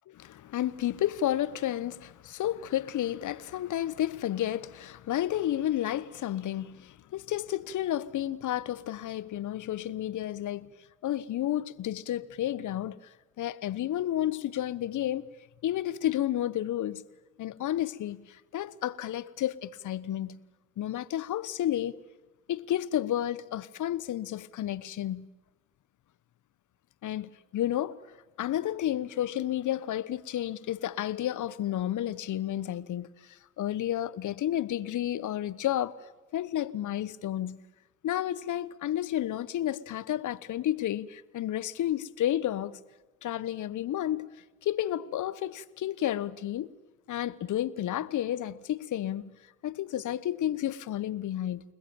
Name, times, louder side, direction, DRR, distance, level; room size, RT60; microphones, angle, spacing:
voice 1, 0.1-10.7 11.0-15.3 15.6-17.1 17.4-20.4 20.8-22.0 22.5-25.3 27.0-28.0 28.4-36.0 36.3-37.6 38.0-42.7 43.2-44.3 44.6-46.7 47.1-49.3 49.6-51.6, left 12 dB, 65° left, 1.1 m, -31 dB
29.5 x 20.5 x 9.0 m
hypercardioid pair, 40°, 33 cm